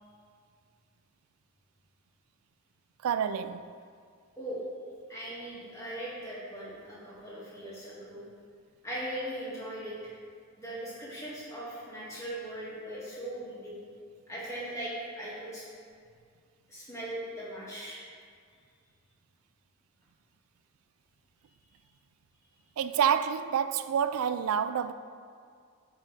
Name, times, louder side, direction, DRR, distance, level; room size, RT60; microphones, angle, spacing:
voice 1, 3.0-3.7 22.8-24.9, right 8 dB, 75° right, 0.3 m, -28 dB
voice 2, 5.1-8.2 8.8-10.1 10.6-13.8 14.3-15.6 16.7-18.0, right 1 dB, 15° left, 1.8 m, -39 dB
10.5 x 3.5 x 4.0 m
head